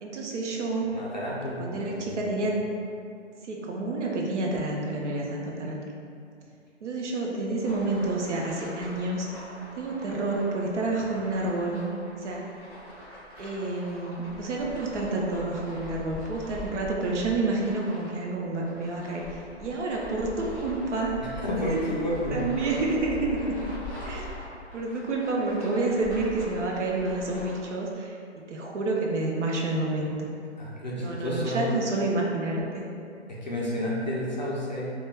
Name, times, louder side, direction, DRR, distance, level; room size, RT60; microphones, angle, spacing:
voice 1, 0.0-0.9 1.6-2.5 3.4-5.9 6.8-9.3 9.8-11.8 12.2-12.4 13.4-19.2 19.6-21.1 21.7-21.8 22.3-23.5 24.0-24.2 24.7-28.2 28.5-30.3 30.9-32.9, right 2 dB, 75° right, -1 dB, 0.6 m, -29 dB
voice 2, 0.8-2.0 21.2-22.8 30.6-31.7 33.4-34.9, equal, 40° left, -6 dB, 0.4 m, -30 dB
sound 1, 7.6-27.6, left 1 dB, 10° right, 0.5 m, -42 dB
2.2 x 2.1 x 3.2 m, 2.4 s
hypercardioid pair, 175°, 35 cm